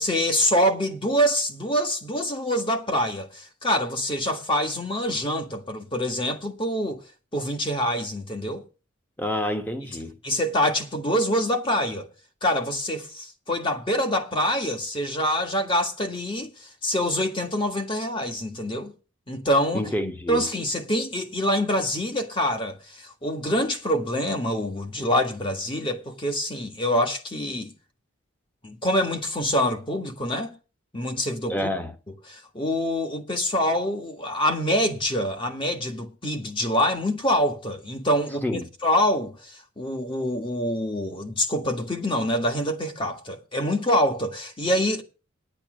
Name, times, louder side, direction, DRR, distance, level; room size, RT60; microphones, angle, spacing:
voice 1, 0.0-7.0 7.3-8.6 10.2-12.1 12.4-18.9 19.3-19.9 20.3-27.7 28.6-30.6 30.9-31.7 32.3-45.0, equal, 25° left, 1.6 m, -25 dB
voice 2, 9.2-10.1 19.7-20.4 31.5-31.9 38.4-38.6, left 1 dB, 10° left, 1.3 m, -28 dB
10.0 x 8.8 x 6.3 m
head